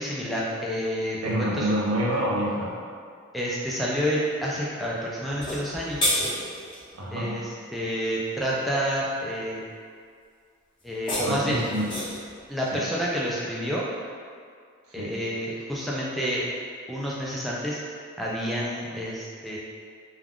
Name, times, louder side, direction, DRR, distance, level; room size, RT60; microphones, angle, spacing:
voice 1, 0.0-1.7 3.3-6.1 7.1-9.6 10.8-11.6 12.5-13.8 14.9-16.5 16.9-17.8 18.2-19.6, equal, ahead, -6 dB, 0.3 m, -29 dB
voice 2, 1.2-2.8 6.9-7.4 11.2-11.9 12.7-12.8 14.9-15.2, equal, 80° right, -4 dB, 0.6 m, -27 dB
sound 1, 5.3-6.8 10.8-12.3, equal, 25° left, 0.7 m, -29 dB
2.3 x 2.3 x 3.4 m, 2.1 s
head